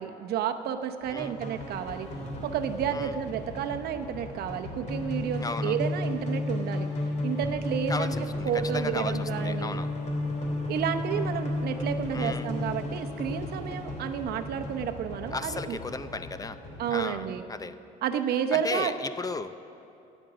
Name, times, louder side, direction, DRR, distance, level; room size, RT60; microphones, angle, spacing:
voice 1, 0.0-2.1 2.4-6.9 7.2-9.8 10.7-15.8 16.8-17.4 18.0-18.9, right 8 dB, 70° right, 7 dB, 0.8 m, -31 dB
sound 1, 1.0-17.2, left 2 dB, 45° left, 3.0 m, -33 dB
voice 2, 5.4-5.8 7.9-9.9 12.1-12.5 15.3-16.6 16.9-17.8 18.5-19.5, left 4 dB, 20° left, 12 dB, 0.5 m, -35 dB
11.0 x 9.1 x 8.7 m, 2.6 s
cardioid pair, 110°, 17 cm